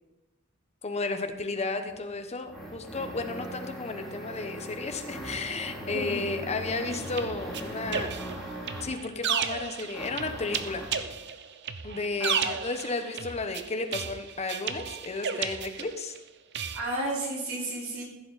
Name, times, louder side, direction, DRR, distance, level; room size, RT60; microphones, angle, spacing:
voice 1, 0.8-8.1 8.8-10.8 11.8-16.1, left 3 dB, 30° left, 7 dB, 0.9 m, -33 dB
sound 1, 1.8-9.0 9.9-11.0, equal, ahead, 2.6 m, -40 dB
voice 2, 5.9-6.3 12.2-12.5 16.7-18.0, right 1 dB, 85° right, -4 dB, 3.9 m, -33 dB
sound 2, 6.9-16.2 16.5-16.8, right 7 dB, 55° right, 0.6 m, -34 dB
15.0 x 7.7 x 4.1 m, 1.1 s
head